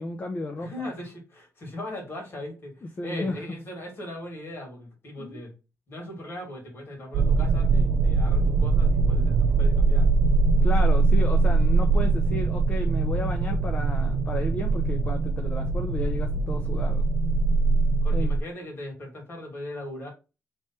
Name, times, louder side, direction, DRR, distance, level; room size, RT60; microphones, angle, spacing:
voice 1, 0.0-0.9 3.0-3.4 5.2-5.4 10.6-17.0 18.1-18.3, left 2 dB, 30° left, 0.6 m, -33 dB
voice 2, 0.6-5.5 5.9-10.1 18.0-20.1, left 1 dB, 45° left, 2.4 m, -39 dB
sound 1, 7.1-18.4, right 3 dB, 75° right, 0.5 m, -22 dB
3.4 x 3.1 x 4.2 m
wide cardioid pair, 135°, 5 cm